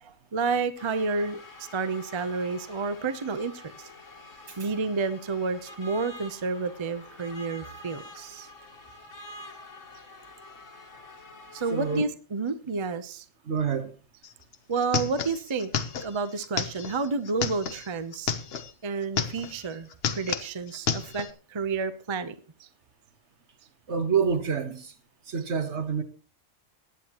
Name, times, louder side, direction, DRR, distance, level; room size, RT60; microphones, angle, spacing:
voice 1, 0.0-1.4 1.7-3.6 4.6-8.5 11.5-13.2 14.7-15.7 16.0-18.3 18.8-22.3 22.6-22.7, right 4 dB, 30° right, 0.6 m, -30 dB
sound 1, 0.8-12.0, left 1 dB, 85° left, 1.9 m, -47 dB
voice 2, 11.7-12.0 13.4-14.0 23.9-24.9 25.3-26.0, right 6 dB, 65° right, 1.5 m, -27 dB
sound 2, 14.2-14.3 14.5-18.7 19.0-19.6 19.9-21.3, left 7 dB, 55° left, 1.1 m, -31 dB
20.5 x 9.2 x 3.0 m
omnidirectional pair, 1.3 m